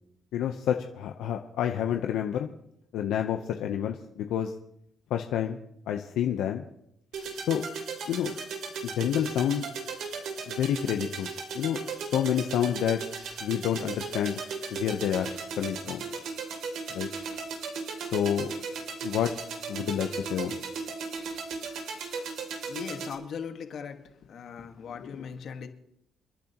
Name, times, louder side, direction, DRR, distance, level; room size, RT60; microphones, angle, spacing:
voice 1, 0.3-2.5 2.9-4.5 5.1-5.6 5.9-6.6 7.5-7.6 8.1-8.3 8.8-9.6 10.5-11.3 11.5-11.8 12.1-13.0 13.4-14.4 14.7-15.3 15.6-16.0 16.9-17.1 18.1-18.5 19.0-19.3 19.7-20.6, left 10 dB, 85° left, 5 dB, 0.8 m, -28 dB
sound 1, 7.1-23.1, right 5 dB, 80° right, 2.9 m, -36 dB
voice 2, 22.7-24.0 24.3-25.7, left 7 dB, 65° left, 6 dB, 1.6 m, -38 dB
29.5 x 10.5 x 3.0 m, 0.73 s
cardioid pair, 90°, 0 cm